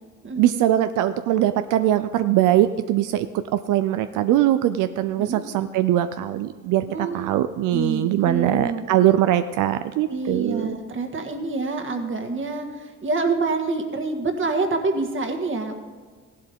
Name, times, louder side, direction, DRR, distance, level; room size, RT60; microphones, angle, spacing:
voice 1, 0.4-10.7, right 12 dB, 85° right, 11 dB, 0.5 m, -21 dB
voice 2, 6.9-7.4 7.7-8.8 10.1-15.8, right 3 dB, 40° right, 5 dB, 1.7 m, -26 dB
15.5 x 11.5 x 3.6 m, 1.5 s
cardioid pair, 90°, 30 cm